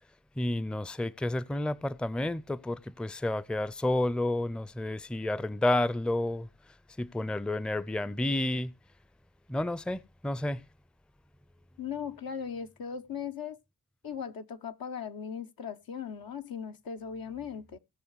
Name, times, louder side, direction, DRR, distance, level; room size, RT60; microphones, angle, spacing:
voice 1, 0.4-8.7 9.5-10.6, left 1 dB, 5° left, 0.5 m, -31 dB
voice 2, 11.8-13.6 14.0-17.8, left 7 dB, 70° left, 1.0 m, -38 dB
19.0 x 6.6 x 3.2 m
supercardioid pair, 45°, 37 cm